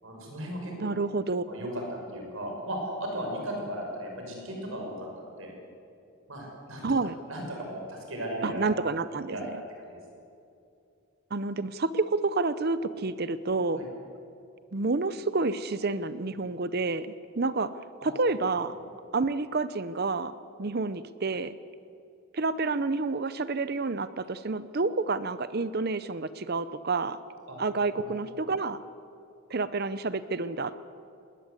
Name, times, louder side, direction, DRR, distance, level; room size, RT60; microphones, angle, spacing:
voice 1, 0.0-0.9 1.5-5.1 5.4-5.5 6.3-6.9 7.3-8.7 9.3-9.4 9.8-10.0 13.7-13.9 18.0-18.1 27.5-27.6 28.0-28.1, right 1 dB, 65° right, 1 dB, 6.0 m, -36 dB
voice 2, 0.8-1.7 6.8-7.2 8.4-9.4 11.3-13.9 14.7-17.1 17.4-18.8 19.1-20.3 20.6-21.6 22.3-27.2 27.6-28.8 29.5-30.7, right 3 dB, 45° right, 14 dB, 0.6 m, -29 dB
20.5 x 19.0 x 8.2 m, 2.6 s
head